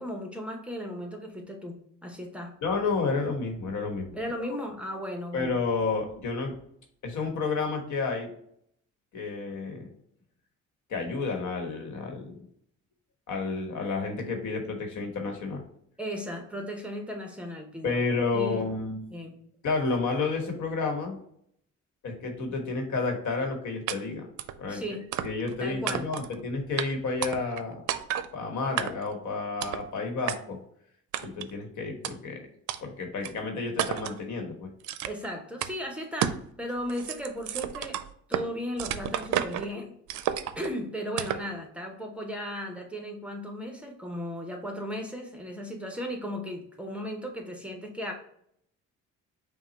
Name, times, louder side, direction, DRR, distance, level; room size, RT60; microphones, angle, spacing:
voice 1, 0.0-2.5 4.1-5.6 16.0-18.0 18.3-18.6 19.1-19.4 24.7-25.0 25.6-26.1 35.1-38.0 38.3-40.0 40.3-48.1, equal, 5° right, 2 dB, 0.9 m, -36 dB
voice 2, 2.6-4.2 4.5-4.6 5.3-6.5 7.0-8.3 9.1-9.9 10.9-12.4 13.3-15.6 17.8-19.0 19.6-21.2 22.0-24.3 24.6-24.8 25.2-27.8 28.3-30.6 31.2-32.4 32.8-34.7, left 4 dB, 70° left, 3 dB, 1.3 m, -30 dB
sound 1, 23.9-24.0 24.4-24.6 25.1-25.5 25.9-26.3 26.8-26.9 27.2-27.6 27.9-28.3 28.8-29.1 29.6-29.9 30.3-30.4 31.1-31.5 32.0-32.1 32.7-32.8 33.2-33.3 33.8-34.2 34.8-35.3 35.6-35.7 36.2-36.5 36.8-38.5 38.8-39.7 40.1-40.7 41.2-41.5, right 11 dB, 75° right, 0.4 m, -31 dB
5.6 x 2.3 x 4.1 m, 0.68 s
cardioid pair, 90°, 30 cm